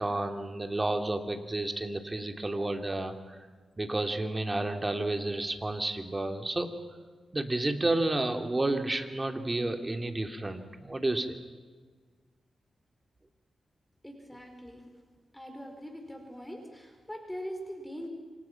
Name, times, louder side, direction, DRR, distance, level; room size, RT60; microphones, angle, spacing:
voice 1, 0.0-3.5 3.8-6.7 7.3-11.4, right 2 dB, 25° right, 6 dB, 2.9 m, -31 dB
voice 2, 14.0-14.9 15.3-18.1, equal, 10° left, 4 dB, 4.6 m, -42 dB
28.0 x 25.5 x 6.0 m, 1.5 s
cardioid pair, 70°, 0 cm